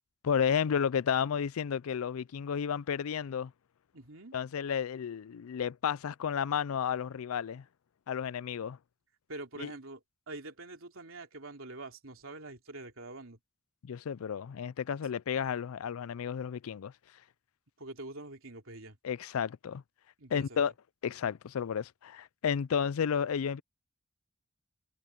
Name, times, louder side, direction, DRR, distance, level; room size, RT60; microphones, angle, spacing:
voice 1, 0.2-3.5 4.3-7.6 8.1-8.8 9.6-9.7 13.8-16.9 19.0-19.8 20.3-20.7 21.0-23.6, left 7 dB, 90° left, 0.4 m, -32 dB
voice 2, 3.9-4.4 9.3-10.0 10.3-13.4 17.8-19.0 20.2-20.6, right 2 dB, 70° right, 3.3 m, -45 dB
head